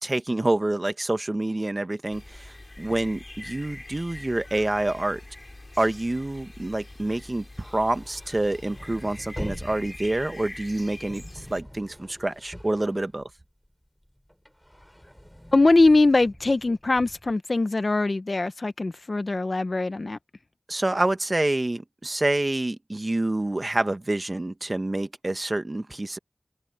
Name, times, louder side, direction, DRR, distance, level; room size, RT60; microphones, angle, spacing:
voice 1, 0.0-5.2 5.8-13.3 20.7-26.2, right 2 dB, 45° right, 1.5 m, -27 dB
sound 1, 2.1-11.6, left 1 dB, 40° left, 4.4 m, -44 dB
sound 2, 7.6-13.7 14.0-17.3, equal, 5° left, 4.2 m, -43 dB
voice 2, 15.5-20.2, left 2 dB, 65° left, 1.1 m, -21 dB
open air
wide cardioid pair, 40°, 0 cm